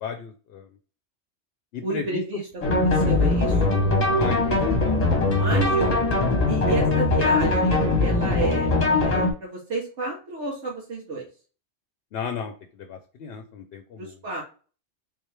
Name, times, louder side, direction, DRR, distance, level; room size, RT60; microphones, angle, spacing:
voice 1, 0.0-0.7 1.7-2.2 4.1-5.3 12.1-14.2, left 6 dB, 65° left, 5 dB, 0.8 m, -35 dB
voice 2, 1.8-3.8 5.3-6.1 6.4-8.7 9.0-11.3 14.0-14.4, right 3 dB, 75° right, -3 dB, 1.3 m, -31 dB
sound 1, 2.6-9.3, left 2 dB, 35° left, 0.9 m, -21 dB
3.7 x 3.1 x 3.2 m, 0.38 s
omnidirectional pair, 1.2 m